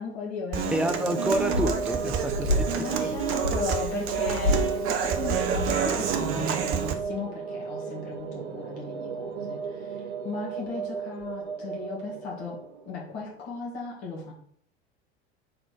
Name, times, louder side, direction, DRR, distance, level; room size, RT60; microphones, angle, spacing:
voice 1, 0.0-1.2 2.8-12.6 12.9-14.3, left 4 dB, 50° left, -3 dB, 1.9 m, -36 dB
Human voice / Acoustic guitar, 0.5-6.9, right 7 dB, 40° right, 0.8 m, -29 dB
voice 2, 0.7-3.2, right 1 dB, 5° right, 7 dB, 0.4 m, -29 dB
sound 1, 0.8-13.3, right 5 dB, 70° right, 0.8 m, -34 dB
sound 2, 1.2-6.6, left 2 dB, 75° left, 2.3 m, -31 dB
4.4 x 3.9 x 5.4 m, 0.63 s
figure-of-eight pair, 70°, 33 cm